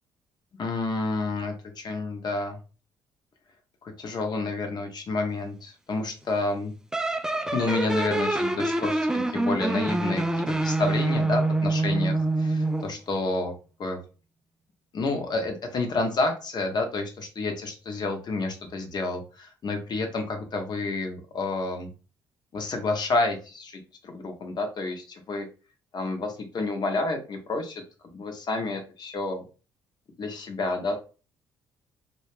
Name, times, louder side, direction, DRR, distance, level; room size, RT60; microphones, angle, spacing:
voice 1, 0.6-2.6 3.8-6.7 7.5-13.5 13.8-14.0 14.9-21.9 22.5-25.5 25.9-27.8 28.1-29.4 30.2-31.0, left 3 dB, 45° left, 4 dB, 0.8 m, -29 dB
sound 1, 6.9-13.0, right 2 dB, 5° right, 0.3 m, -26 dB
2.2 x 2.2 x 3.2 m, 0.34 s
figure-of-eight pair, 50°, 10 cm